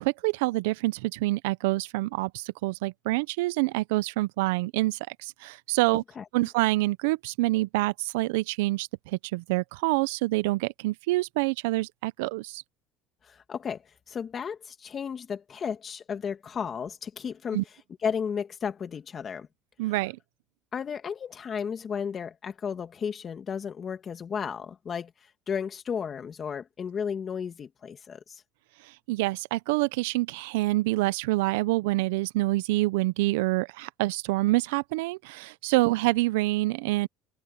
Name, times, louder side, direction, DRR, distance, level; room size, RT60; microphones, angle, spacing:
voice 1, 0.0-6.0 6.3-12.6 17.5-17.6 19.8-20.2 28.8-37.1, right 20 dB, 85° right, 0.5 m, -27 dB
voice 2, 13.2-17.6 18.0-19.5 20.7-28.4, left 7 dB, 40° left, 1.7 m, -34 dB
supercardioid pair, 90°, 0 cm